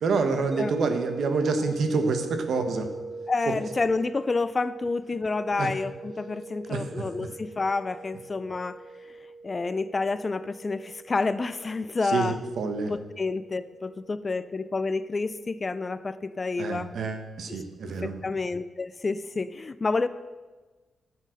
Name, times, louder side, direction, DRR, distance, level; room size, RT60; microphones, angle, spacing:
voice 1, 0.0-2.9 5.6-5.7 6.7-6.8 12.1-12.9 16.6-18.2, right 4 dB, 70° right, 7 dB, 1.3 m, -27 dB
sound 1, 0.5-15.4, right 3 dB, 15° right, 3.1 m, -41 dB
voice 2, 3.3-8.8 9.4-12.4 12.9-16.9 17.5-20.1, left 3 dB, 30° left, 14 dB, 0.4 m, -29 dB
9.7 x 7.6 x 6.5 m, 1.3 s
cardioid pair, 95°, 0 cm